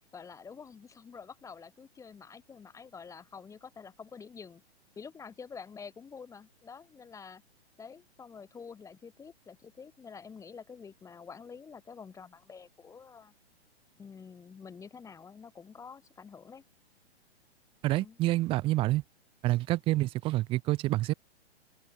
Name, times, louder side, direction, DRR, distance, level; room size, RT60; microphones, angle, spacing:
voice 1, 0.1-4.6 5.0-7.4 7.8-13.3 14.0-16.6 17.9-18.2, left 6 dB, 10° left, 1.1 m, -48 dB
voice 2, 17.8-19.0 19.4-21.1, right 17 dB, 15° right, 0.6 m, -27 dB
open air
figure-of-eight pair, 120°, 33 cm